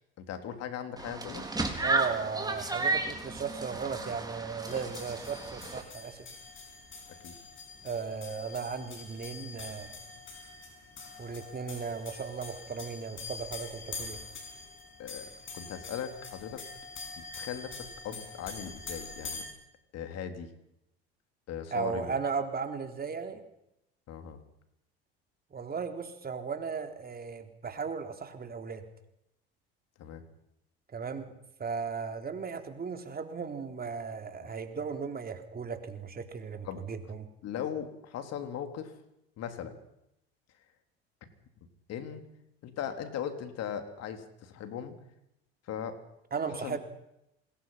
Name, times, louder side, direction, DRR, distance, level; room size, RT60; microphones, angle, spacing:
voice 1, 0.3-1.5 7.2-7.3 15.0-16.6 17.2-19.5 19.9-20.5 21.5-22.1 24.1-24.4 30.0-30.2 34.4-34.5 36.6-36.8 37.4-38.9 39.4-39.8 41.9-42.3 42.6-45.0 45.7-46.0 46.6-46.8, left 8 dB, 55° left, 7 dB, 3.6 m, -38 dB
sound 1, 1.0-5.8, right 3 dB, 15° right, 3.9 m, -33 dB
voice 2, 1.8-6.3 7.8-10.0 11.2-14.2 21.7-23.4 25.5-28.8 30.9-31.3 31.6-37.3 46.3-46.8, right 5 dB, 30° right, 6 dB, 3.6 m, -36 dB
sound 2, 4.7-19.5, left 4 dB, 40° left, 6.4 m, -45 dB
27.0 x 20.5 x 5.8 m, 0.82 s
hypercardioid pair, 70°, 30 cm